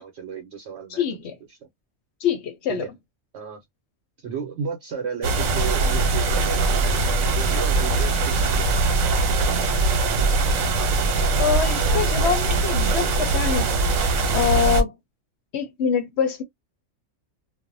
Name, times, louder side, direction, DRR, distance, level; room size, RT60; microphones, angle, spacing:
voice 1, 0.0-1.7 2.7-2.9 3.3-3.6 4.2-8.9, right 6 dB, 60° right, 0.9 m, -34 dB
voice 2, 0.9-1.4 2.2-2.8 11.4-13.7 14.3-14.9 15.5-16.4, left 7 dB, 65° left, 0.8 m, -24 dB
sound 1, 5.2-14.8, right 3 dB, 85° right, 1.1 m, -21 dB
2.5 x 2.1 x 2.5 m
omnidirectional pair, 1.3 m